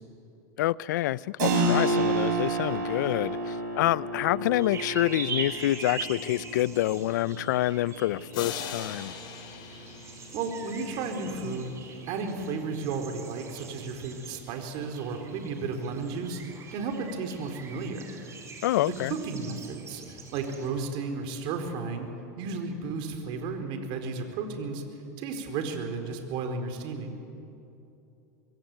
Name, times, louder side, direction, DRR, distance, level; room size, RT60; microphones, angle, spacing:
voice 1, 0.6-9.1 18.6-19.2, left 15 dB, 80° left, 21 dB, 0.6 m, -27 dB
Keyboard (musical), 1.4-11.8, right 2 dB, 80° right, 6.6 m, -32 dB
sound 1, 4.6-20.7, right 5 dB, 30° right, 5.1 m, -43 dB
sound 2, 8.3-11.0, left 7 dB, 50° left, 4.4 m, -40 dB
voice 2, 10.3-11.7 12.1-18.1 18.8-22.1 22.4-24.8 25.2-27.2, right 4 dB, 55° right, 5 dB, 4.4 m, -33 dB
24.5 x 22.0 x 9.3 m, 2.8 s
supercardioid pair, 120°, 10 cm